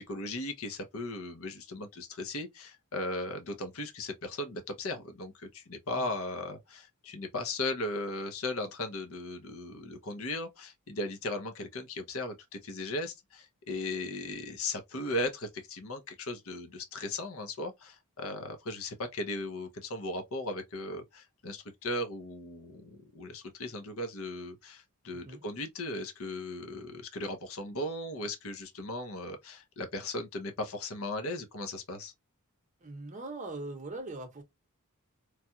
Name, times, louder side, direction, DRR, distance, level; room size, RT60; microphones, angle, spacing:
voice 1, 0.0-12.4 12.6-32.1, left 2 dB, 65° left, 0.8 m, -37 dB
voice 2, 25.1-25.4 32.8-34.4, right 2 dB, 35° right, 0.8 m, -41 dB
3.3 x 2.3 x 2.7 m
head